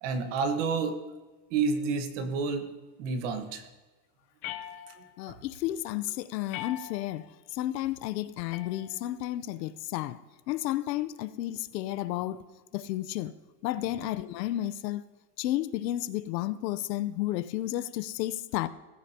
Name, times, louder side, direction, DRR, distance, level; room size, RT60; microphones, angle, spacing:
voice 1, 0.0-1.0 1.5-2.7 3.0-3.6, right 4 dB, 45° right, 1.4 m, -29 dB
sound 1, 4.4-5.3 6.5-7.3 8.5-9.3, left 12 dB, 40° left, 0.8 m, -42 dB
voice 2, 5.2-7.2 7.5-10.2 10.5-12.4 12.7-13.3 13.6-15.0 15.4-18.7, left 14 dB, 75° left, 0.9 m, -32 dB
17.0 x 15.5 x 2.9 m
supercardioid pair, 175°, 50 cm